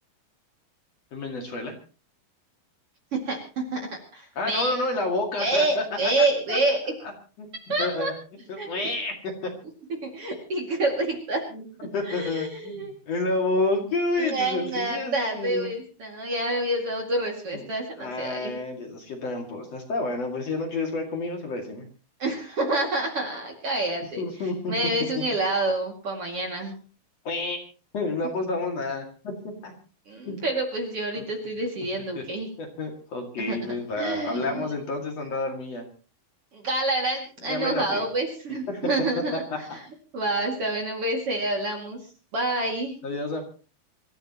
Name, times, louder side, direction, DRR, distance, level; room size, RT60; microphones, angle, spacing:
voice 1, 1.1-1.7 4.4-5.8 6.2-6.6 7.4-7.5 7.8-8.1 8.5-9.5 11.5-11.6 11.9-15.7 17.5-17.7 18.0-21.9 24.2-24.7 27.2-27.6 27.9-29.3 29.6-29.7 30.3-30.4 32.1-32.2 32.6-35.8 37.4-38.0 38.7-38.8 39.7-39.8 43.0-43.4, left 2 dB, 45° left, 2 dB, 3.0 m, -29 dB
voice 2, 3.1-3.8 4.1-4.7 5.4-6.8 7.7-8.1 8.6-8.9 10.0-11.4 12.1-12.9 14.2-18.5 22.2-24.2 24.7-26.8 30.1-32.5 33.4-34.7 36.5-39.4 39.7-39.8 40.1-42.0 42.3-42.9, right 2 dB, 40° right, 2 dB, 2.8 m, -28 dB
26.5 x 14.5 x 3.0 m, 0.35 s
omnidirectional pair, 4.4 m